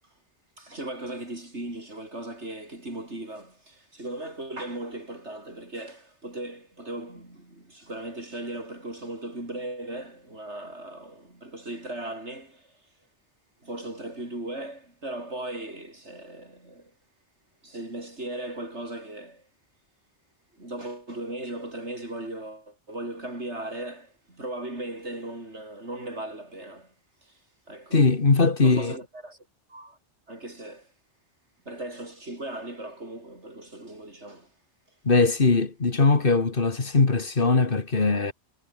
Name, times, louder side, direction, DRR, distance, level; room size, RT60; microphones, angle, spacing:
voice 1, 0.6-12.7 13.6-16.9 17.6-19.4 20.6-26.9 27.2-27.3 27.7-28.0 28.6-29.4 29.7-30.0 30.3-30.9 31.7-34.5, right 1 dB, 85° right, 7.2 m, -37 dB
voice 2, 27.9-29.0 35.1-38.3, left 3 dB, 50° left, 2.1 m, -21 dB
omnidirectional pair, 1.1 m